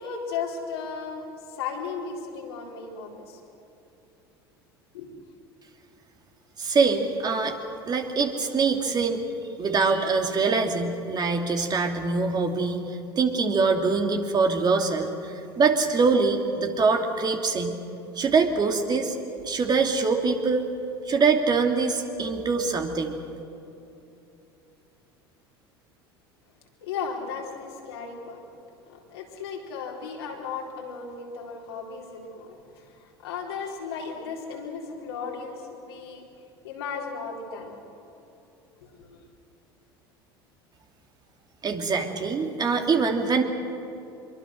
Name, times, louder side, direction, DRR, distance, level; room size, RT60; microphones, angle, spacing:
voice 1, 0.0-3.4 4.9-5.1 26.8-28.4 28.9-36.3 36.6-37.8 38.7-39.3, left 5 dB, 80° left, -1 dB, 4.1 m, -36 dB
voice 2, 6.6-7.5 7.9-9.2 9.6-17.8 18.1-19.2 19.4-20.6 21.1-23.2 41.6-43.4, right 4 dB, 30° right, 4 dB, 2.6 m, -24 dB
24.5 x 23.0 x 6.4 m, 2.8 s
hypercardioid pair, 75°, 13 cm